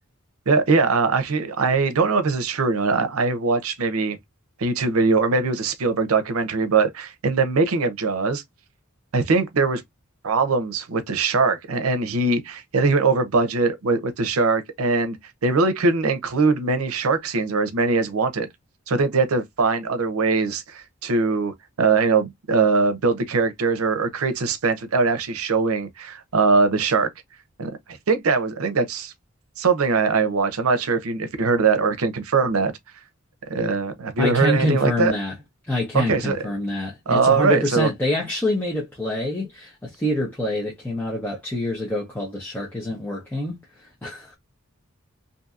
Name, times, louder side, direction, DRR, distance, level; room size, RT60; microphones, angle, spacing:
voice 1, 0.5-4.2 4.6-8.4 9.1-9.8 10.2-15.2 15.4-18.5 18.9-27.1 27.6-29.1 29.6-32.7 33.5-35.1 35.9-36.4 37.1-37.9, right 4 dB, 90° right, 0.6 m, -21 dB
voice 2, 34.2-35.3 35.7-43.6 44.0-44.4, left 1 dB, 10° left, 0.8 m, -26 dB
2.7 x 2.6 x 2.3 m
head